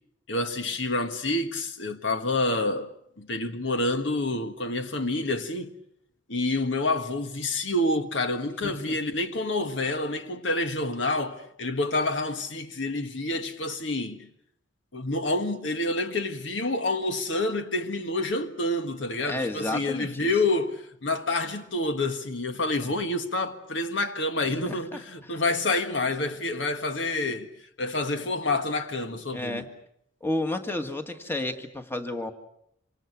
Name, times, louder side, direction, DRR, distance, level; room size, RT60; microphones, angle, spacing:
voice 1, 0.3-2.9 3.2-5.7 6.3-14.2 14.9-27.5 27.8-29.7, left 2 dB, 70° left, 1.6 m, -28 dB
voice 2, 8.6-9.0 19.2-20.3 22.8-23.0 24.7-25.0 25.3-25.4 29.3-29.7 30.2-32.3, left 1 dB, 10° left, 1.7 m, -32 dB
27.0 x 25.5 x 6.1 m
head